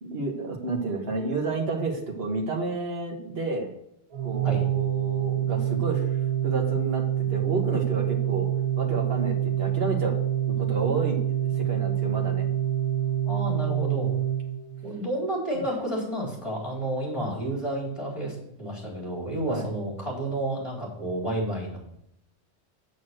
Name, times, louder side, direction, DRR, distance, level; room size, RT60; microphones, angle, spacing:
voice 1, 0.0-3.7 4.2-6.1 6.4-8.5 8.8-10.1 10.5-12.5 15.5-15.6 19.5-19.7, right 3 dB, 65° right, 1 dB, 1.8 m, -30 dB
Organ, 4.1-15.0, right 11 dB, 45° right, 0.4 m, -26 dB
voice 2, 13.2-14.1 14.8-21.8, right 1 dB, 30° left, -3 dB, 3.9 m, -30 dB
7.0 x 6.5 x 7.6 m, 0.78 s
omnidirectional pair, 1.1 m